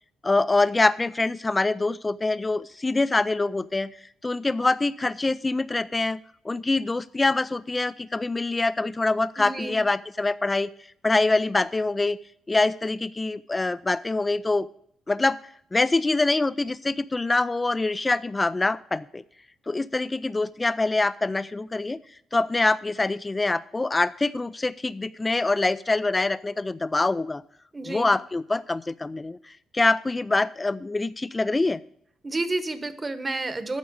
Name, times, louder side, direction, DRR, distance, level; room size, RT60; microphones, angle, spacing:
voice 1, 0.2-3.9 4.2-6.2 6.4-10.7 11.0-12.2 12.5-14.7 15.1-15.4 15.7-19.2 19.7-22.0 22.3-27.4 27.9-29.4 29.7-31.8, left 2 dB, 20° left, 15 dB, 0.4 m, -24 dB
voice 2, 9.4-9.8 27.7-28.1 32.2-33.8, right 2 dB, 25° right, 11 dB, 1.1 m, -30 dB
9.3 x 6.1 x 8.5 m, 0.67 s
cardioid pair, 90°, 0 cm